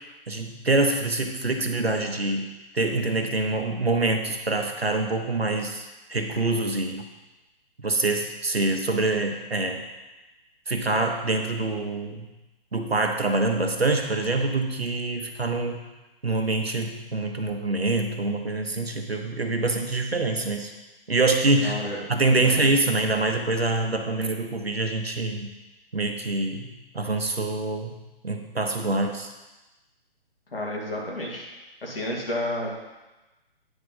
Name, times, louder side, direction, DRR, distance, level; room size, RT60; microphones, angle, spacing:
voice 1, 0.3-2.4 2.7-7.1 7.8-9.8 10.7-12.3 12.7-15.8 16.2-20.7 21.1-21.8 22.1-25.5 25.9-27.9 28.2-29.3, right 2 dB, 90° right, 4 dB, 1.1 m, -25 dB
voice 2, 21.6-22.0 22.4-22.7 30.5-31.5 31.8-32.7, left 1 dB, 70° left, -2 dB, 2.3 m, -31 dB
9.3 x 3.6 x 5.6 m, 1.1 s
figure-of-eight pair, 135°, 30 cm